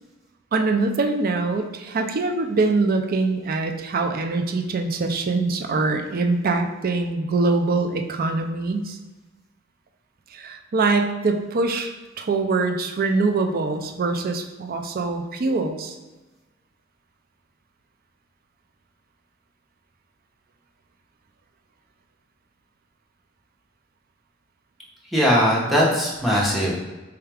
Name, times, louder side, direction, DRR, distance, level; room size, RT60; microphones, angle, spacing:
voice 1, 0.5-9.0 10.3-11.9 12.2-16.0, right 3 dB, 50° right, 5 dB, 0.4 m, -23 dB
voice 2, 25.1-26.8, equal, ahead, -6 dB, 0.9 m, -20 dB
4.4 x 2.4 x 3.3 m, 1.2 s
head